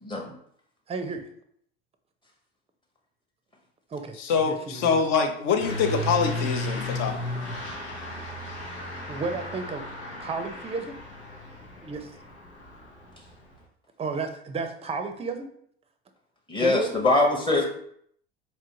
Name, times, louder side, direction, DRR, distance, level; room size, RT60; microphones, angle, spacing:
voice 1, 0.0-0.4 16.5-17.6, left 2 dB, 15° left, 0 dB, 0.8 m, -23 dB
voice 2, 0.9-1.3 3.9-5.0 9.1-9.9 10.2-11.0 11.8-12.1 14.0-15.5 16.6-17.0, right 4 dB, 20° right, 7 dB, 0.5 m, -32 dB
voice 3, 4.2-7.2, left 6 dB, 55° left, 6 dB, 0.7 m, -25 dB
Truck / Accelerating revving vroom, 5.6-13.6, left 1 dB, 90° left, 0.9 m, -35 dB
4.2 x 2.5 x 2.9 m, 0.67 s
hypercardioid pair, 75°, 32 cm